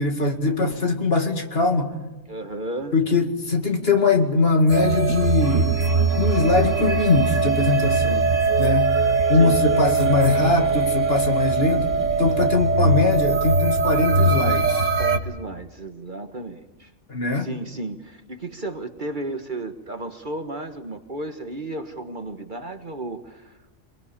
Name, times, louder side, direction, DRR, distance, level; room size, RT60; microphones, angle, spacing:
voice 1, 0.0-2.0 2.9-5.8 6.2-9.0 9.3-11.9 12.2-14.9 17.1-17.5, left 3 dB, 45° left, 5 dB, 2.4 m, -21 dB
voice 2, 2.3-2.9 9.3-9.6 15.0-16.9 17.4-23.7, right 2 dB, 40° right, 7 dB, 1.5 m, -33 dB
sound 1, 4.6-4.8 5.8-5.9 7.0-7.4 8.4-8.7 9.9-10.4, left 1 dB, 30° left, 2.9 m, -44 dB
sound 2, 4.7-15.2, right 3 dB, 65° right, 1.9 m, -21 dB
24.0 x 22.0 x 8.7 m, 1.0 s
omnidirectional pair, 1.4 m